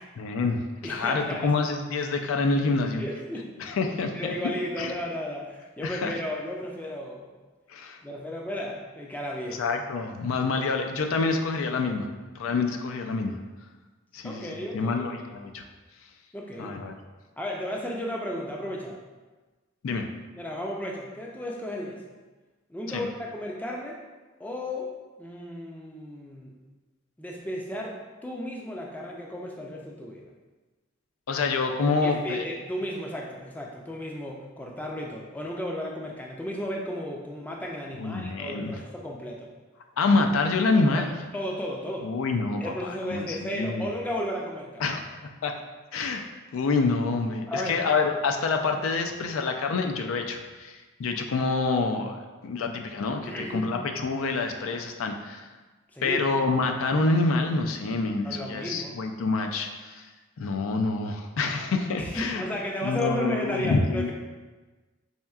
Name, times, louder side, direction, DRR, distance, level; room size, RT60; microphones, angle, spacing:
voice 1, 0.2-3.0 3.6-4.1 4.8-4.9 5.8-6.1 7.7-8.0 9.6-12.1 12.4-13.4 14.1-15.6 16.6-16.9 19.8-20.1 22.9-23.1 31.3-32.5 38.0-38.8 40.0-41.1 42.0-43.9 44.8-45.0 45.4-45.5 45.9-46.2 46.5-55.5 56.0-60.1 60.4-62.4 62.8-64.1, left 3 dB, 85° left, 4 dB, 0.4 m, -27 dB
voice 2, 0.8-1.5 3.0-3.5 4.1-7.3 8.0-9.6 14.2-15.1 16.3-16.7 17.4-19.0 20.4-22.0 22.7-24.0 24.4-24.9 25.2-26.5 27.2-30.3 32.0-39.5 41.0-41.1 41.3-42.1 42.6-44.9 47.5-47.9 53.2-53.7 55.9-56.2 58.2-59.0 62.0-64.1, equal, 10° left, -1 dB, 0.3 m, -34 dB
4.2 x 3.4 x 2.3 m, 1.3 s
head